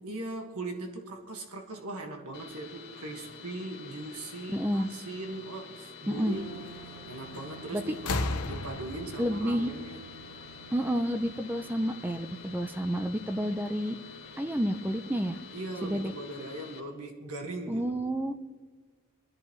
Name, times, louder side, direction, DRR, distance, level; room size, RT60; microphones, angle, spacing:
voice 1, 0.0-6.5 7.0-8.1 8.5-10.0 15.5-17.9, right 2 dB, 80° right, 3 dB, 1.7 m, -39 dB
sound 1, 2.3-16.8, left 5 dB, 45° left, 2.1 m, -48 dB
voice 2, 4.5-4.9 6.1-6.4 7.7-7.9 9.2-9.7 10.7-14.0 14.4-15.4 15.8-16.1 17.7-18.4, equal, 10° right, 8 dB, 0.5 m, -30 dB
sound 2, 6.2-16.1, right 5 dB, 60° right, 2.1 m, -52 dB
sound 3, 7.3-7.6 7.9-10.7 11.8-11.9, left 2 dB, 90° left, 1.1 m, -35 dB
25.5 x 10.5 x 3.2 m, 1.5 s
head